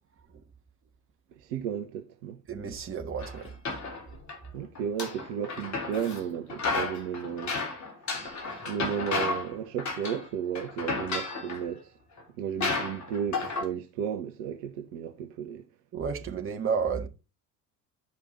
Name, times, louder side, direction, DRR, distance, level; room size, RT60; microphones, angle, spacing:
voice 1, 1.4-2.4 4.5-7.6 8.1-8.3 8.7-11.9 12.4-15.6, right 8 dB, 50° right, 1.0 m, -34 dB
voice 2, 2.5-3.5 15.9-17.1, right 6 dB, 25° right, 1.5 m, -31 dB
sound 1, 3.2-4.4 4.8-6.2 6.5-9.5 9.8-10.3 10.6-11.6 12.2-12.3 12.6-13.6, left 3 dB, 35° left, 3.0 m, -32 dB
11.0 x 5.3 x 4.2 m
figure-of-eight pair, 65°, 47 cm